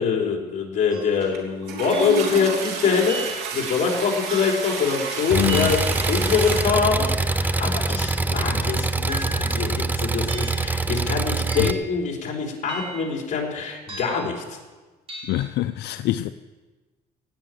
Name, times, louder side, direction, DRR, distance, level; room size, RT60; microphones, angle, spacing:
voice 1, 0.0-14.6, left 5 dB, 45° left, 3.8 m, -24 dB
sound 1, 0.9-1.2 1.9-2.3 3.1-3.6 4.3-4.7 5.5-6.0 6.7-7.1 7.9-8.3 9.1-9.6 10.3-10.7 11.5-11.9 12.7-13.2 13.9-14.4 15.1-15.4, right 2 dB, 35° right, 4.2 m, -37 dB
Toilet flush, 1.2-1.4 1.6-6.6, right 4 dB, 80° right, 3.2 m, -30 dB
voice 2, 5.3-5.7 11.6-11.7 15.3-16.3, left 15 dB, 80° left, 0.5 m, -24 dB
Engine, 5.3-11.7, right 3 dB, 10° right, 0.6 m, -24 dB
18.0 x 6.5 x 9.1 m
cardioid pair, 110°, 17 cm